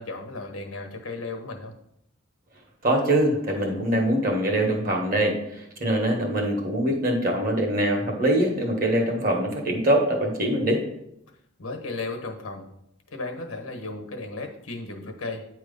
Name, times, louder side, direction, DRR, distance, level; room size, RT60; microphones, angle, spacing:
voice 1, 0.0-1.7 11.6-12.7 13.1-15.5, left 3 dB, 85° left, 4 dB, 1.2 m, -35 dB
voice 2, 2.8-10.8, right 1 dB, 40° right, 1 dB, 1.4 m, -23 dB
9.0 x 3.1 x 5.3 m, 0.80 s
head